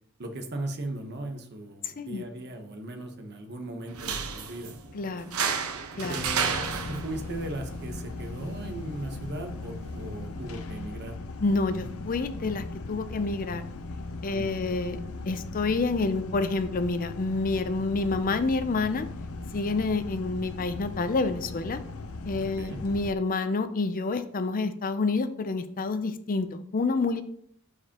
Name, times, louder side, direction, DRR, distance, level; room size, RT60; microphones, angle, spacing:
voice 1, 0.2-4.7 5.9-11.1 14.3-14.8 22.4-22.8, right 1 dB, 50° right, 6 dB, 1.1 m, -38 dB
sound 1, 3.9-10.9, right 6 dB, 85° right, 0.9 m, -34 dB
voice 2, 4.9-5.4 6.0-6.2 11.4-13.6 14.2-15.0 15.2-19.1 19.5-21.8 22.2-27.2, left 3 dB, 40° left, 11 dB, 0.5 m, -28 dB
sound 2, 6.1-23.1, left 2 dB, 85° left, 0.7 m, -38 dB
11.5 x 5.0 x 2.9 m, 0.65 s
head